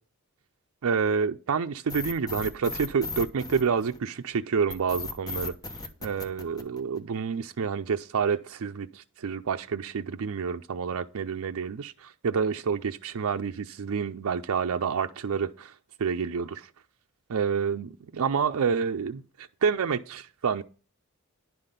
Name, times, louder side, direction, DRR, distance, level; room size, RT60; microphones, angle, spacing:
voice 1, 0.8-5.5 6.0-15.7 16.0-16.7 17.3-20.6, right 6 dB, 75° right, 0.4 m, -28 dB
sound 1, 1.9-4.2 4.7-7.1, left 3 dB, 15° left, 1.0 m, -36 dB
10.5 x 5.8 x 5.2 m
head